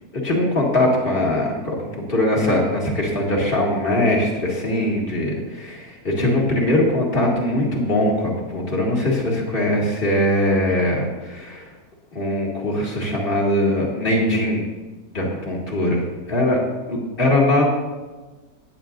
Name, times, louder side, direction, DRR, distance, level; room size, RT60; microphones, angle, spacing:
voice 1, 0.2-1.7 2.1-11.7 12.1-14.6 15.1-16.6 16.9-17.6, left 1 dB, 35° left, -3 dB, 2.3 m, -21 dB
14.5 x 9.4 x 2.6 m, 1.2 s
omnidirectional pair, 1.6 m